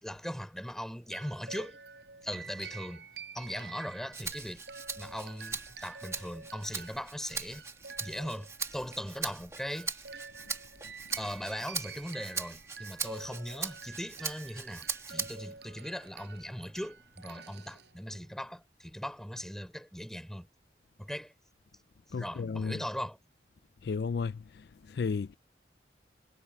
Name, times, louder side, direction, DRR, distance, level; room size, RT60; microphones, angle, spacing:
voice 1, 0.0-1.8 2.2-3.1 3.3-4.6 5.0-7.6 8.0-10.0 11.2-20.5 21.0-21.3 22.1-23.2, equal, 5° left, 3.8 m, -39 dB
sound 1, 1.1-18.5, right 5 dB, 85° right, 5.6 m, -49 dB
Rattle (instrument), 4.1-15.6 16.0-17.2, right 5 dB, 15° right, 1.6 m, -40 dB
voice 2, 22.1-22.8 23.8-24.4 24.9-25.4, left 5 dB, 70° left, 0.4 m, -33 dB
head